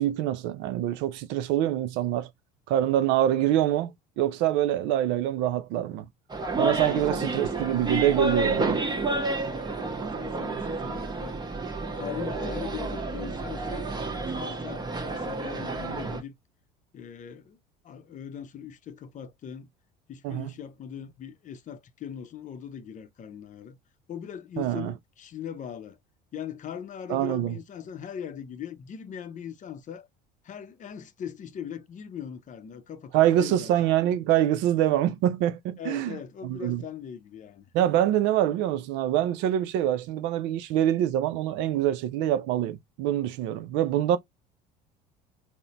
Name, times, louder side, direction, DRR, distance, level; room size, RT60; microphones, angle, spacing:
voice 1, 0.0-2.3 2.7-3.9 4.2-6.0 6.6-8.8 20.2-20.5 24.6-24.9 27.1-27.5 33.1-36.1 36.4-36.8 37.7-44.2, right 12 dB, 65° right, 0.5 m, -25 dB
sound 1, 6.3-16.2, right 3 dB, 20° right, 1.0 m, -30 dB
voice 2, 6.6-7.3 9.5-11.4 11.9-13.9 14.2-16.4 16.9-17.6 17.8-19.7 20.1-23.8 24.1-26.0 26.3-30.1 30.4-33.7 35.8-37.7, left 8 dB, 40° left, 0.6 m, -40 dB
3.9 x 2.2 x 2.9 m
hypercardioid pair, 75°, 20 cm